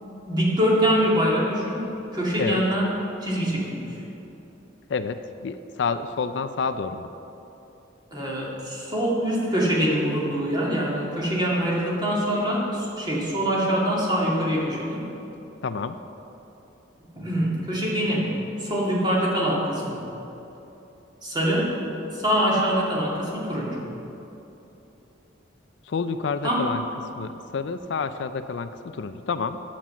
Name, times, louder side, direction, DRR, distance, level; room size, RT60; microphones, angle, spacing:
voice 1, 0.0-1.8 2.1-2.9 3.2-4.0 8.1-15.1 17.2-18.3 18.6-20.1 21.2-21.7 22.1-23.8 26.4-26.7, equal, 25° right, -5 dB, 2.2 m, -24 dB
voice 2, 4.9-7.1 15.6-16.0 25.9-26.8 27.2-29.6, left 5 dB, 70° left, 11 dB, 0.4 m, -29 dB
9.7 x 7.5 x 6.9 m, 3.0 s
head